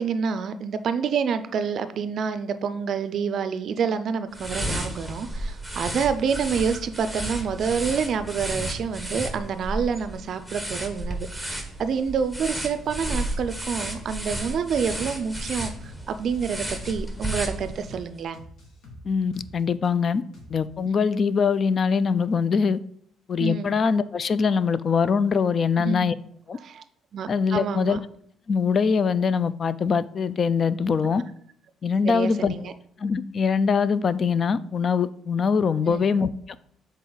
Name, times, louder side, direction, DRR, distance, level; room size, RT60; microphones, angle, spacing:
voice 1, 0.0-18.4 20.8-21.0 23.4-23.7 25.8-26.1 26.5-26.8 27.1-28.0 32.0-32.7 35.8-36.0, right 6 dB, 55° right, 0.4 m, -28 dB
sound 1, 4.3-18.0, right 1 dB, 5° left, 1.1 m, -33 dB
sound 2, 12.8-13.0 13.3-13.5 13.8-14.0 14.3-16.0 16.3-16.4 16.8-17.0 17.3-17.5 17.8-18.0 18.3-19.9 20.3-20.8, left 1 dB, 70° left, 1.8 m, -46 dB
voice 2, 19.1-20.2 20.5-22.8 23.3-26.1 26.5-26.6 27.3-28.0 28.5-31.2 31.8-32.5 33.0-36.3, left 5 dB, 40° left, 0.3 m, -23 dB
6.8 x 4.1 x 3.9 m
cardioid pair, 110°, 0 cm